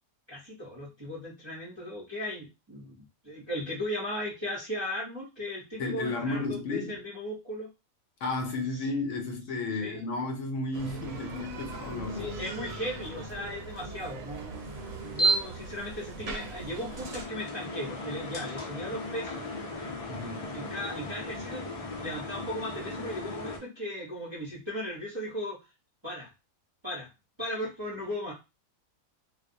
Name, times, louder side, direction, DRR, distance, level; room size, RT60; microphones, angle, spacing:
voice 1, 0.3-7.7 8.8-8.9 9.8-10.0 12.1-19.4 20.5-21.7 22.0-25.6 26.0-26.3 26.8-27.1 27.4-28.3, left 1 dB, 30° right, 0.6 m, -37 dB
voice 2, 5.8-7.0 8.2-12.3 20.1-20.5, left 3 dB, 75° left, 0.9 m, -33 dB
Bicycle, 10.7-17.3, right 2 dB, 75° right, 1.0 m, -41 dB
sound 1, 14.5-23.6, right 1 dB, 60° left, 0.3 m, -35 dB
2.3 x 2.0 x 2.6 m
omnidirectional pair, 1.4 m